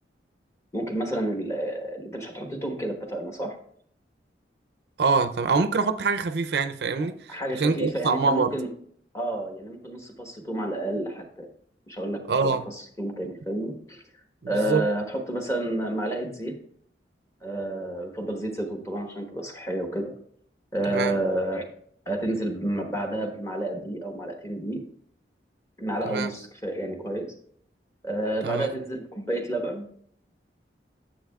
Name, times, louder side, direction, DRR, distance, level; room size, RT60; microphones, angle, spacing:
voice 1, 0.7-3.6 7.0-8.7 9.1-11.5 11.9-14.0 14.5-16.5 17.4-20.1 20.7-21.7 22.1-24.8 25.8-27.3 28.0-29.9, right 1 dB, 15° left, 1.1 m, -30 dB
voice 2, 5.0-8.5 12.3-12.6 14.4-14.8 20.9-21.2 26.1-26.3 28.4-28.7, right 4 dB, 65° right, 0.5 m, -25 dB
10.0 x 7.7 x 2.3 m
head